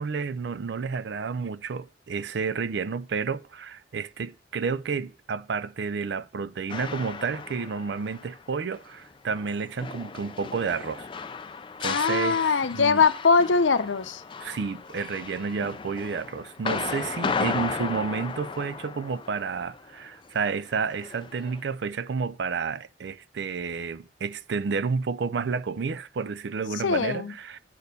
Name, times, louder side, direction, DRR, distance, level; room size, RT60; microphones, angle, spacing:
voice 1, 0.0-11.1 11.8-13.0 14.4-27.6, right 5 dB, 65° right, 0.4 m, -31 dB
sound 1, 6.7-20.3 20.6-21.6, left 5 dB, 25° left, 0.4 m, -35 dB
voice 2, 11.8-14.2 26.8-27.3, left 4 dB, 85° left, 0.7 m, -22 dB
8.3 x 4.3 x 6.7 m
head